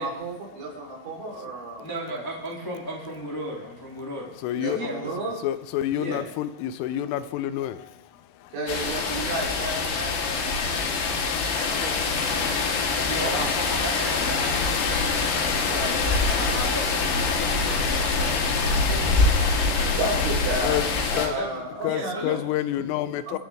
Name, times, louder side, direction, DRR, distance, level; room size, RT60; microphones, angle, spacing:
voice 1, 0.0-2.2 4.6-5.4 6.1-6.2 8.5-12.5 13.2-13.5 15.6-16.6 18.6-18.9 19.8-20.8 21.1-22.4 23.3-23.4, right 1 dB, 70° right, -3 dB, 6.1 m, -33 dB
voice 2, 1.8-4.3 4.7-5.1 5.9-6.2 13.0-15.5 15.8-20.0 20.5-20.6 21.3-21.6 21.8-22.3, equal, 15° left, -4 dB, 0.7 m, -35 dB
voice 3, 4.4-4.8 5.4-8.5 20.6-20.8 21.2-21.3 21.8-23.4, left 12 dB, 85° left, 12 dB, 3.3 m, -28 dB
sound 1, 8.7-21.3, left 4 dB, 65° left, 3.7 m, -24 dB
27.0 x 9.6 x 3.5 m, 0.91 s
omnidirectional pair, 5.8 m